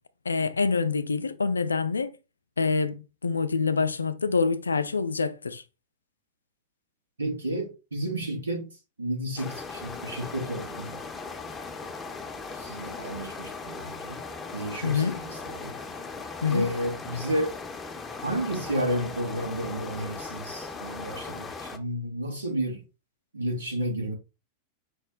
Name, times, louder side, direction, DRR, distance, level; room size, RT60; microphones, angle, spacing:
voice 1, 0.3-2.1 2.6-5.6 14.8-15.2 16.4-16.7, left 4 dB, 75° left, 0.4 m, -26 dB
voice 2, 7.2-8.7 9.0-11.0 12.5-14.2 14.5-15.8 16.4-17.5 18.2-22.8 23.3-24.1, right 1 dB, 75° right, 1.3 m, -31 dB
sound 1, 9.4-21.8, left 4 dB, 20° left, 0.7 m, -38 dB
4.9 x 2.1 x 3.7 m
figure-of-eight pair, 90°, 0 cm